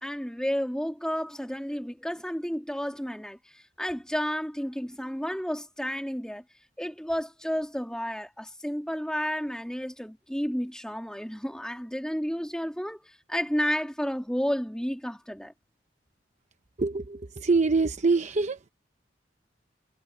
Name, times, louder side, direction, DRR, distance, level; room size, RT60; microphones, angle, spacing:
voice 1, 0.0-6.4 6.8-15.5, equal, 5° left, 3.3 m, -31 dB
voice 2, 16.8-18.7, right 4 dB, 40° right, 0.8 m, -25 dB
head